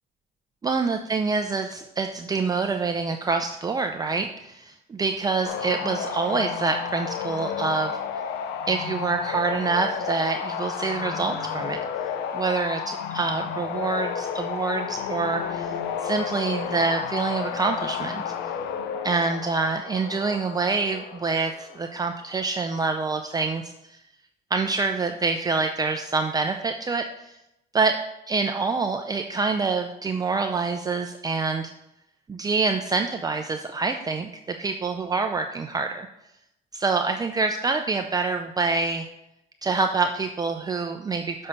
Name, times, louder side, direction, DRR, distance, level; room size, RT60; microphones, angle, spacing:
voice 1, 0.6-7.9 8.7-11.8 12.3-15.8 16.0-18.2 19.0-23.7 24.5-27.3 27.7-28.0 28.3-31.7 32.3-36.1 36.7-39.1 39.6-41.5, right 4 dB, 20° right, 5 dB, 0.5 m, -26 dB
sound 1, 5.4-22.2, left 7 dB, 85° left, 0.7 m, -32 dB
7.0 x 5.4 x 5.7 m, 0.85 s
cardioid pair, 110°, 17 cm